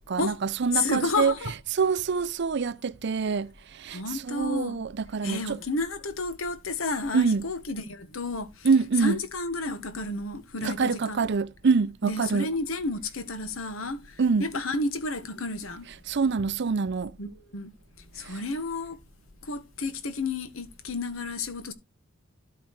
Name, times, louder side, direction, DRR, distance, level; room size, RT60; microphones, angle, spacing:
voice 1, 0.1-1.3 1.7-5.6 7.1-7.5 8.6-9.2 10.6-12.5 14.2-14.5 16.1-17.1 18.2-18.4, right 5 dB, 55° right, 0.5 m, -25 dB
voice 2, 0.7-1.6 3.9-4.8 5.2-11.3 12.0-15.9 17.2-17.7 18.1-19.0 19.4-21.7, left 3 dB, 85° left, 1.4 m, -31 dB
12.0 x 4.8 x 4.7 m
head